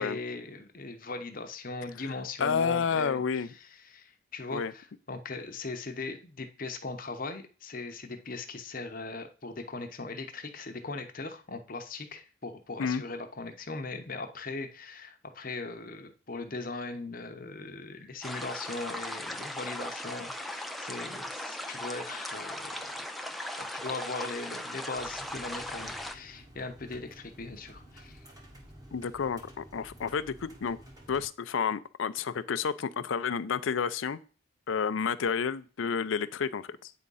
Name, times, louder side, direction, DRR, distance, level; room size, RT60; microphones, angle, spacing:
voice 1, 0.0-23.1 23.7-28.2, left 3 dB, 40° left, 6 dB, 0.9 m, -39 dB
voice 2, 2.4-3.5 4.5-4.7 12.8-13.0 28.9-30.8 31.1-34.2 34.7-36.9, left 6 dB, 70° left, 14 dB, 0.5 m, -30 dB
sound 1, 18.2-26.1, left 1 dB, ahead, 0.3 m, -38 dB
sound 2, 24.9-31.3, equal, 20° right, 1.5 m, -52 dB
8.6 x 3.7 x 5.5 m, 0.37 s
head